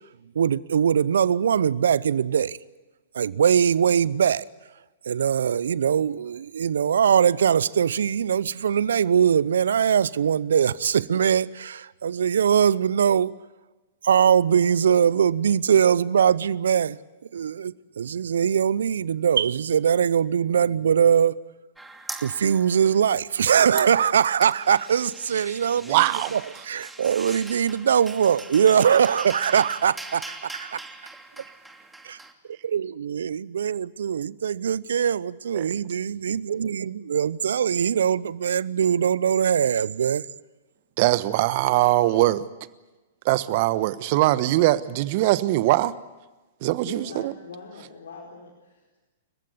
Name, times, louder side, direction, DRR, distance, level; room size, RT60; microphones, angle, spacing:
voice 1, 0.3-2.6 3.1-4.5 5.1-13.3 14.0-17.0 17.3-21.4 22.2-26.0 26.3-30.8 32.0-32.2 32.6-40.2, right 8 dB, 70° right, 0.7 m, -22 dB
sound 1, 21.8-23.2 23.5-32.3, right 2 dB, 5° right, 2.7 m, -41 dB
voice 2, 25.8-26.4 35.5-35.8 41.0-42.4 43.2-46.0 46.6-47.3, right 17 dB, 50° right, 1.2 m, -21 dB
voice 3, 46.8-49.0, left 4 dB, 70° left, 4.4 m, -42 dB
29.5 x 15.0 x 9.5 m
hypercardioid pair, 110°, 0 cm